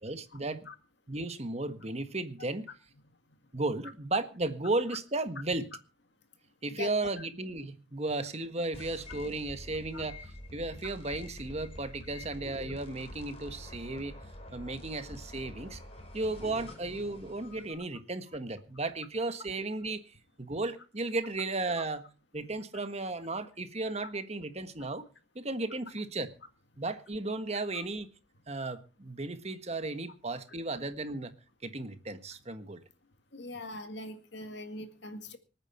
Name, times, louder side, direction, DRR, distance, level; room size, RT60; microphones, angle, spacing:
voice 1, 0.0-0.7 1.1-2.7 3.5-5.7 6.6-14.2 14.5-15.8 16.1-20.0 20.4-22.1 22.3-25.0 25.3-26.3 26.8-28.1 28.5-31.3 31.6-32.8, right 2 dB, 35° right, 9 dB, 1.5 m, -35 dB
sound 1, 8.7-17.7, left 1 dB, 30° left, 5.2 m, -46 dB
voice 2, 33.3-35.4, left 2 dB, 65° left, 8 dB, 2.1 m, -41 dB
25.5 x 9.1 x 4.4 m, 0.34 s
head